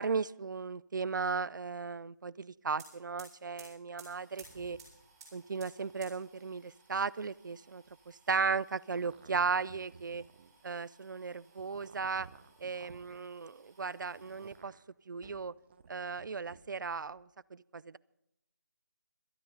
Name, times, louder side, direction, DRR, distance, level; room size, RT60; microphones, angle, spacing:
voice 1, 0.0-4.8 5.3-10.2 10.6-12.3 12.6-14.7 15.1-15.5 15.9-18.0, right 5 dB, 75° right, 21 dB, 0.4 m, -36 dB
sound 1, 2.7-14.6 15.1-15.9 16.1-17.1, right 4 dB, 20° right, 5.8 m, -59 dB
sound 2, 9.0-10.5 11.5-13.2 14.2-14.8 15.6-16.6, right 6 dB, 35° right, 0.7 m, -55 dB
18.0 x 13.0 x 3.9 m, 0.83 s
figure-of-eight pair, 160°, 10 cm